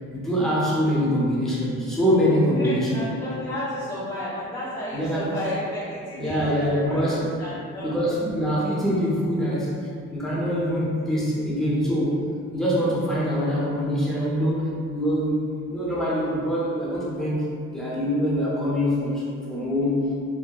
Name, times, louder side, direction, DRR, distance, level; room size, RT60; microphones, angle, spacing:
voice 1, 0.1-3.0 4.9-5.3 6.2-7.3 7.8-19.2 19.5-20.0, equal, ahead, -8 dB, 0.6 m, -24 dB
voice 2, 2.6-7.0 7.4-8.0, left 1 dB, 55° left, -14 dB, 1.0 m, -32 dB
2.8 x 2.1 x 2.2 m, 2.3 s
cardioid pair, 90°, 30 cm